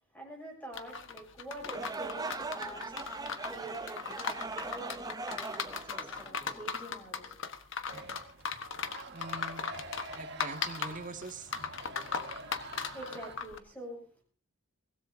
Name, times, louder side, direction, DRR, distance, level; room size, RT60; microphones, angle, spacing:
voice 1, 0.1-7.4 7.9-8.2 12.1-12.4 12.7-14.2, right 1 dB, 10° left, -1 dB, 7.1 m, -47 dB
sound 1, 0.7-13.6, left 6 dB, 60° left, 1.2 m, -38 dB
sound 2, 1.6-6.8, right 3 dB, 20° right, 0.6 m, -40 dB
sound 3, 7.9-13.4, right 2 dB, 55° right, 1.7 m, -47 dB
voice 2, 9.1-9.6 10.1-11.5 12.0-12.1, right 3 dB, 40° right, 4 dB, 2.0 m, -43 dB
23.5 x 17.5 x 2.7 m, 0.41 s
head